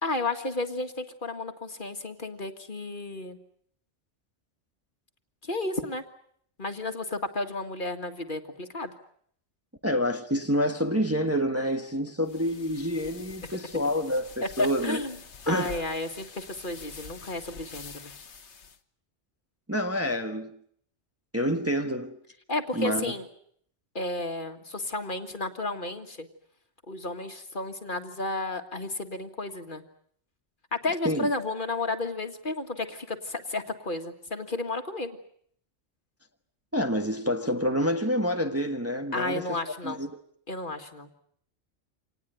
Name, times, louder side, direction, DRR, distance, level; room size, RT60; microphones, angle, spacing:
voice 1, 0.0-3.4 5.4-6.0 6.6-9.0 14.4-15.2 15.5-18.1 22.5-23.3 23.9-26.3 26.9-29.8 30.8-35.2 39.1-40.0 40.5-41.1, left 2 dB, 45° left, 2.0 m, -32 dB
voice 2, 9.8-15.0 15.5-15.8 19.7-20.6 21.3-22.2 22.7-23.1 31.0-31.3 36.7-39.6 39.8-40.1, equal, 10° right, 1.3 m, -28 dB
sound 1, 12.2-18.8, left 5 dB, 70° left, 1.5 m, -46 dB
26.5 x 19.0 x 9.2 m
omnidirectional pair, 1.2 m